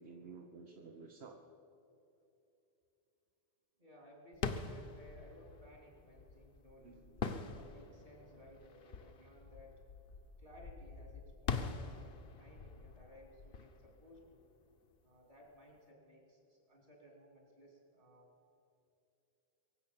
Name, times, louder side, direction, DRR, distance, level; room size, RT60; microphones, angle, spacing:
voice 1, 0.0-1.4 6.8-7.4, right 4 dB, 80° right, 2 dB, 1.3 m, -53 dB
voice 2, 3.8-6.9 7.5-9.8 10.4-14.5 15.0-18.3, equal, 60° right, 0 dB, 3.4 m, -60 dB
sound 1, 4.3-14.9, left 5 dB, 65° left, 1.0 m, -44 dB
23.5 x 7.8 x 7.4 m, 2.9 s
omnidirectional pair, 1.1 m